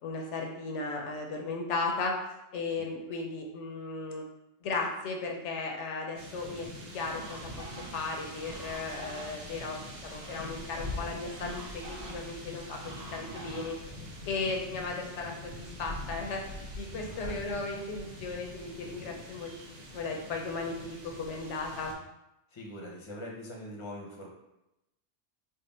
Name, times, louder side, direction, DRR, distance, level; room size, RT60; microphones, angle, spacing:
voice 1, 0.0-2.1 2.5-4.3 4.6-6.7 6.9-13.8 14.2-19.6 19.9-21.9, left 3 dB, 80° left, 2 dB, 0.9 m, -36 dB
sound 1, 6.1-21.9, left 1 dB, 85° right, 1.2 m, -44 dB
sound 2, 7.1-14.6, right 1 dB, 50° right, 1.2 m, -47 dB
voice 2, 17.0-17.4 22.5-24.3, left 1 dB, 30° left, -2 dB, 0.7 m, -43 dB
3.6 x 2.1 x 4.1 m, 0.90 s
omnidirectional pair, 1.2 m